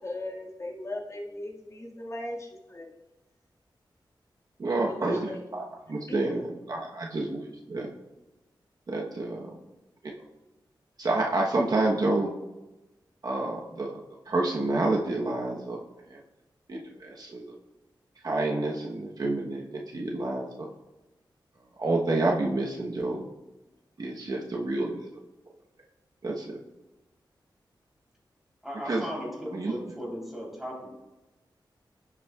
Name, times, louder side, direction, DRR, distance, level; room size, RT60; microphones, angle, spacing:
voice 1, 0.0-3.0 4.7-5.4 6.1-6.6, left 1 dB, 35° left, -3 dB, 2.0 m, -38 dB
voice 2, 4.6-7.9 8.9-9.5 11.0-12.3 13.2-14.0 14.3-15.8 16.1-16.2 16.7-17.4 18.2-20.7 21.8-23.2 24.0-25.1 26.2-26.5 28.9-29.0 29.5-29.7, right 2 dB, 50° right, -1 dB, 1.1 m, -29 dB
voice 3, 28.6-30.9, equal, 5° right, -3 dB, 3.5 m, -36 dB
16.0 x 7.3 x 2.4 m, 1.1 s
wide cardioid pair, 120°, 8 cm